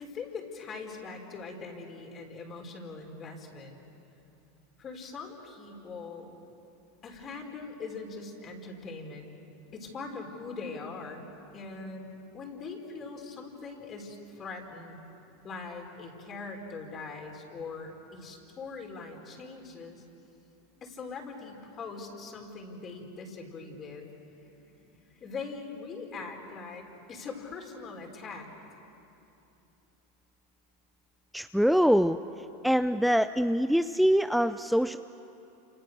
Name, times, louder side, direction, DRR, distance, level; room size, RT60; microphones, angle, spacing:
voice 1, 0.0-3.8 4.8-6.3 7.0-9.3 9.7-11.3 11.5-12.1 12.3-15.0 15.4-20.0 20.8-28.5, left 4 dB, 35° left, 2 dB, 5.2 m, -42 dB
voice 2, 31.3-32.2 32.6-35.0, equal, ahead, 11 dB, 0.5 m, -24 dB
29.5 x 28.0 x 6.7 m, 2.8 s
hypercardioid pair, 95°, 0 cm